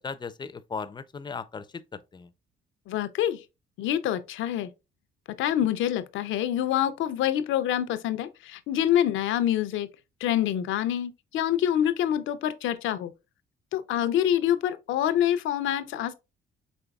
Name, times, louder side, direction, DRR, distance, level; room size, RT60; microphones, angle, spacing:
voice 1, 0.0-2.3, left 5 dB, 20° left, 0.4 m, -37 dB
voice 2, 2.9-3.4 3.8-4.7 5.4-9.9 10.2-13.1 13.7-16.1, left 11 dB, 80° left, 0.5 m, -26 dB
5.1 x 3.9 x 2.3 m
cardioid pair, 90°, 20 cm